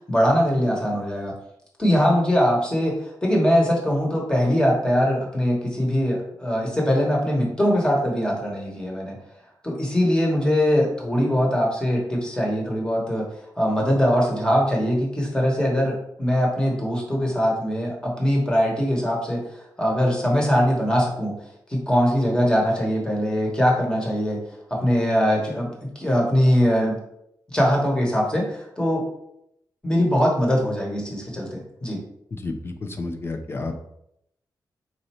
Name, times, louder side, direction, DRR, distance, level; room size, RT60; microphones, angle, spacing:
voice 1, 0.1-1.3 1.8-9.2 9.6-13.3 13.6-19.4 19.8-21.3 21.7-24.4 24.7-27.0 27.5-29.0 29.8-32.0, equal, 10° left, -2 dB, 1.1 m, -22 dB
voice 2, 32.3-33.8, left 3 dB, 30° left, 6 dB, 0.5 m, -31 dB
4.1 x 2.6 x 4.3 m, 0.76 s
wide cardioid pair, 160°, 8 cm